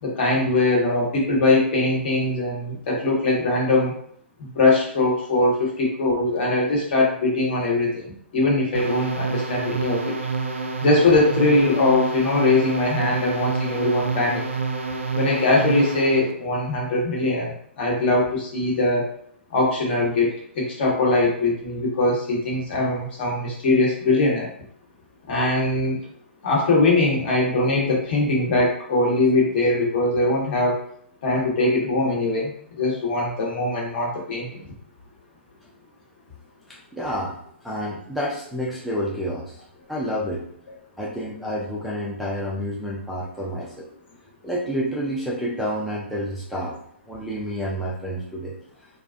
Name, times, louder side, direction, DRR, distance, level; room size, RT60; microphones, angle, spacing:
voice 1, 0.0-4.0 4.4-10.1 10.8-14.4 15.1-19.1 19.5-24.5 25.3-26.0 26.4-30.8 31.2-34.5, left 2 dB, 50° left, -3 dB, 1.0 m, -21 dB
sound 1, 8.7-16.3, right 4 dB, 90° right, 0.4 m, -28 dB
voice 2, 36.7-37.4 37.6-39.6 39.9-40.5 41.0-43.9 44.4-46.8 47.1-48.5, equal, ahead, -6 dB, 0.4 m, -29 dB
2.4 x 2.2 x 2.4 m, 0.64 s
hypercardioid pair, 125°, 7 cm